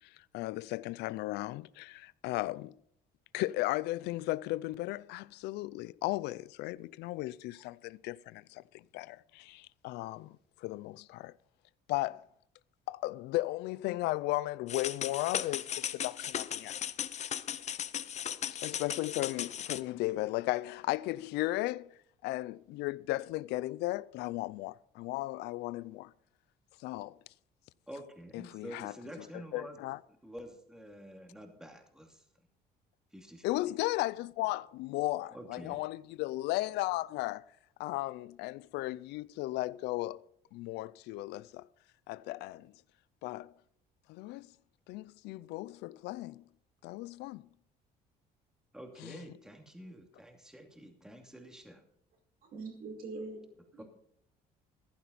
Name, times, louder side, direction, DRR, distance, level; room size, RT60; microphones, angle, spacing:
voice 1, 0.3-2.7 3.3-11.3 11.9-12.2 12.9-16.8 18.5-21.9 22.2-26.1 26.8-27.2 28.3-30.0 33.4-37.4 37.8-40.2 40.5-41.7 42.1-42.7 43.2-43.5 44.1-44.5 44.9-46.4 46.8-47.5 49.0-49.2, left 18 dB, 90° left, 0.5 m, -35 dB
sound 1, 14.7-19.8, left 9 dB, 45° left, 0.6 m, -37 dB
voice 2, 27.9-29.8 30.2-32.2 33.1-33.5 35.3-35.8 48.7-51.8 53.8-53.9, equal, 5° right, 2.6 m, -48 dB
voice 3, 52.4-53.4 53.7-53.8, right 3 dB, 60° right, 5.1 m, -42 dB
14.5 x 11.0 x 4.1 m
cardioid pair, 110°, 17 cm